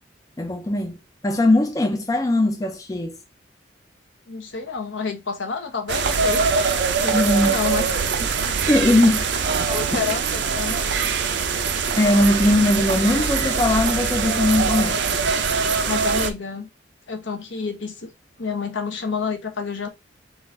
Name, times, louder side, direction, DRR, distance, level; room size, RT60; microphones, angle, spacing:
voice 1, 0.4-1.0 1.2-3.2 7.1-7.6 8.4-9.2 9.9-10.0 11.9-15.0, left 1 dB, 20° left, 0.4 m, -20 dB
voice 2, 4.3-7.9 8.3-8.6 9.7-10.8 15.9-16.7 17.1-18.1 18.4-19.9, left 5 dB, 75° left, 1.0 m, -29 dB
sound 1, 5.9-16.3, right 5 dB, 60° right, 0.6 m, -23 dB
3.9 x 2.5 x 4.0 m
head